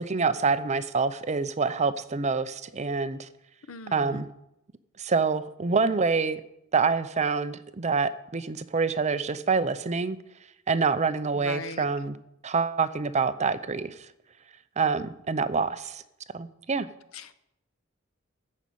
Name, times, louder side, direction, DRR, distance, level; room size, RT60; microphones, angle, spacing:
voice 1, 0.0-3.3 3.9-4.3 5.0-6.4 6.7-10.2 10.7-12.2 12.4-14.1 14.8-16.0 16.3-16.9, right 4 dB, 35° right, 13 dB, 0.6 m, -26 dB
voice 2, 3.7-4.2 11.4-11.9 17.1-17.3, left 3 dB, 90° left, 12 dB, 0.8 m, -39 dB
13.5 x 5.3 x 8.5 m, 0.82 s
head